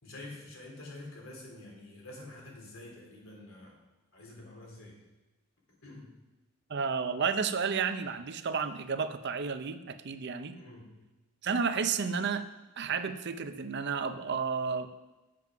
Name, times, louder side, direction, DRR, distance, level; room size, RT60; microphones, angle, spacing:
voice 1, 0.0-3.8 4.1-5.0 5.8-6.1 10.5-11.0, left 2 dB, 70° left, -1 dB, 3.4 m, -47 dB
voice 2, 6.7-10.6 11.4-12.5 12.8-14.9, right 5 dB, 55° right, 10 dB, 0.6 m, -32 dB
7.6 x 7.5 x 6.0 m, 1.1 s
head